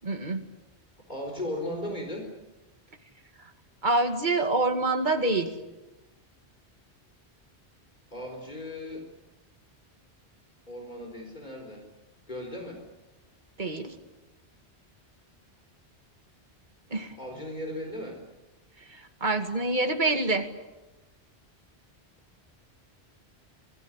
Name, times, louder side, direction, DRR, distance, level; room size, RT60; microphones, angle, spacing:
voice 1, 0.0-0.4 3.8-5.5 13.6-14.0 16.9-17.1 18.9-20.5, right 2 dB, 45° right, 6 dB, 2.4 m, -26 dB
voice 2, 1.1-2.3 8.1-9.1 10.7-11.9 12.3-12.8 17.2-18.2, left 1 dB, 45° left, 2 dB, 4.3 m, -36 dB
26.5 x 19.0 x 9.9 m, 1.1 s
omnidirectional pair, 1.1 m